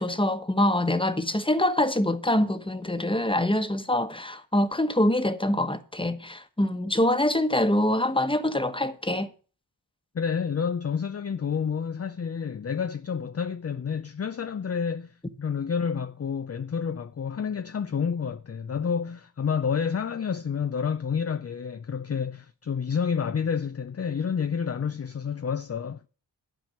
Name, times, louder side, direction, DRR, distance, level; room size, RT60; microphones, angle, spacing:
voice 1, 0.0-9.3, left 1 dB, 10° left, 1.2 m, -25 dB
voice 2, 10.1-26.0, left 6 dB, 35° left, 0.5 m, -29 dB
12.0 x 5.0 x 7.8 m
cardioid pair, 40°, 43 cm